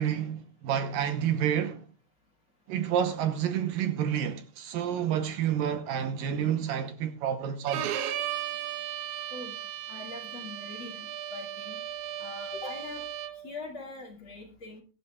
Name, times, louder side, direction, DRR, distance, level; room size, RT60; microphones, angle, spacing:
voice 1, 0.0-1.9 2.7-7.9, right 9 dB, 75° right, 2.4 m, -29 dB
Bowed string instrument, 7.7-13.5, right 11 dB, 90° right, 3.0 m, -36 dB
voice 2, 9.9-11.8 12.2-13.0 13.4-14.8, left 3 dB, 35° left, 2.7 m, -42 dB
22.5 x 11.0 x 2.3 m
omnidirectional pair, 4.5 m